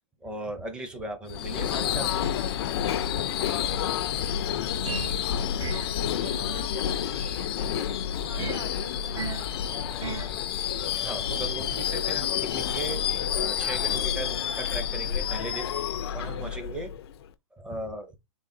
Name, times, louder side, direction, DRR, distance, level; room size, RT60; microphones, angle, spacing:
voice 1, 0.2-2.3 4.7-5.1 11.0-15.7 16.1-16.9 17.5-18.2, right 2 dB, 5° right, 0.6 m, -37 dB
Subway metro underground / Screech, 1.3-17.2, left 9 dB, 50° left, 0.4 m, -29 dB
voice 2, 3.0-3.8 5.4-5.7 6.2-7.9 8.2-9.6 14.9-15.0 16.2-16.5, right 3 dB, 85° right, 2.0 m, -47 dB
sound 1, 4.9-5.2 5.6-6.0 8.4-8.7 9.2-9.5 10.0-10.3, right 7 dB, 60° right, 0.6 m, -34 dB
3.8 x 3.2 x 4.2 m
hypercardioid pair, 165°, 17 cm